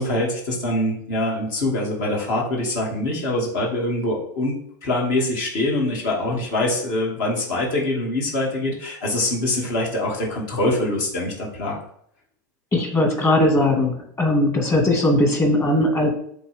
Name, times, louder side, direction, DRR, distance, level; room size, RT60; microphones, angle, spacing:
voice 1, 0.0-4.5 4.8-11.8, left 1 dB, 65° left, -2 dB, 2.4 m, -24 dB
voice 2, 12.7-16.1, left 1 dB, 25° left, 2 dB, 2.0 m, -19 dB
8.0 x 3.7 x 3.5 m, 0.67 s
hypercardioid pair, 95°, 10 cm